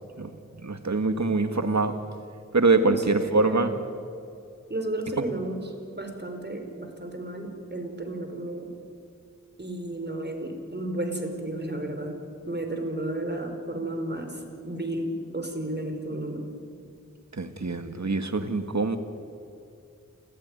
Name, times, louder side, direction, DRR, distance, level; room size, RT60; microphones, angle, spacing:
voice 1, 0.6-1.9 2.5-3.7 17.3-19.0, right 3 dB, 65° right, 8 dB, 2.0 m, -24 dB
voice 2, 2.7-3.7 4.7-8.7 9.6-12.2 12.5-16.4, right 1 dB, 35° right, 5 dB, 4.8 m, -33 dB
29.0 x 15.5 x 9.9 m, 2.4 s
wide cardioid pair, 40°, 31 cm